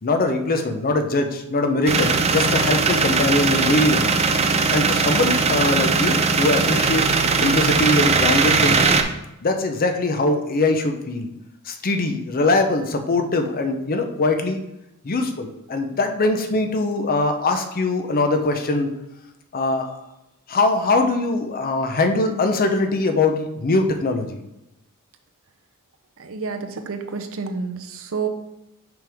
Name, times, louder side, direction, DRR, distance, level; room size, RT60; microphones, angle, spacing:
voice 1, 0.0-4.1 4.7-8.9 9.4-11.3 11.7-14.6 15.0-18.9 19.5-20.0 20.5-24.4, left 2 dB, 40° left, 6 dB, 0.6 m, -22 dB
sound 1, 1.9-9.0, right 4 dB, 30° right, 0.4 m, -19 dB
voice 2, 26.2-28.3, right 5 dB, 65° right, 6 dB, 0.7 m, -29 dB
6.0 x 5.3 x 3.5 m, 0.89 s
head